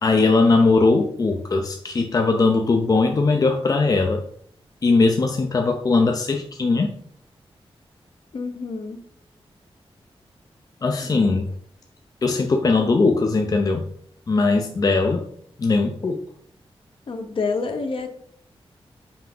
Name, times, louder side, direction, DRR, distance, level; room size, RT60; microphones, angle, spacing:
voice 1, 0.0-4.2 4.8-6.9 10.8-11.5 12.2-13.8 14.3-15.2 15.6-16.2, left 3 dB, 40° left, 4 dB, 0.5 m, -19 dB
voice 2, 8.3-9.0 11.0-11.4 17.1-18.1, left 4 dB, 60° left, 5 dB, 1.0 m, -28 dB
5.8 x 4.9 x 3.8 m, 0.64 s
wide cardioid pair, 155°, 10 cm